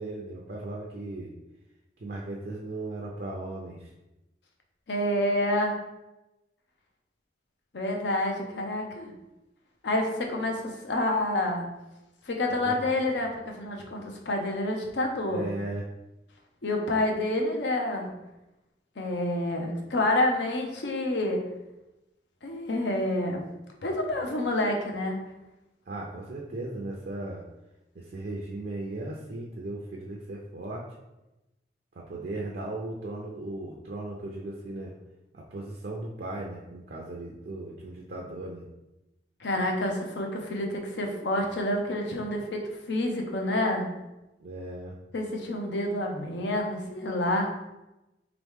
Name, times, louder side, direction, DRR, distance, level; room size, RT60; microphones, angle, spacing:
voice 1, 0.0-1.3 2.0-3.9 12.6-12.7 15.3-15.8 25.9-27.4 28.0-30.9 32.0-34.9 35.3-38.6 44.4-45.0, right 2 dB, 55° right, -2 dB, 0.4 m, -37 dB
voice 2, 4.9-5.7 7.7-9.1 9.8-11.7 12.3-15.4 16.6-18.1 19.0-21.4 22.4-23.5 23.8-25.2 39.4-43.9 45.1-47.5, left 1 dB, 75° left, 1 dB, 0.7 m, -28 dB
3.5 x 3.0 x 3.5 m, 0.98 s
head